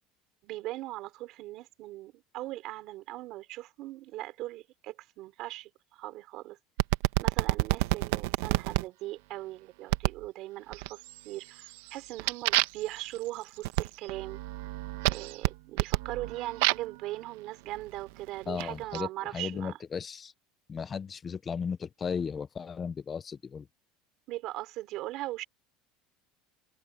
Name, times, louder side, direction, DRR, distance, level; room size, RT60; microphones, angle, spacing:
voice 1, 0.4-6.6 7.2-14.4 15.1-19.8 24.3-25.4, right 17 dB, 45° right, 4.0 m, -39 dB
sound 1, 6.8-8.8 9.9-10.3 10.7-11.2 11.6-17.0 17.8-19.0, right 18 dB, 80° right, 1.1 m, -29 dB
voice 2, 18.5-20.3 20.7-23.7, left 6 dB, 20° left, 0.5 m, -35 dB
cardioid pair, 170°, 0 cm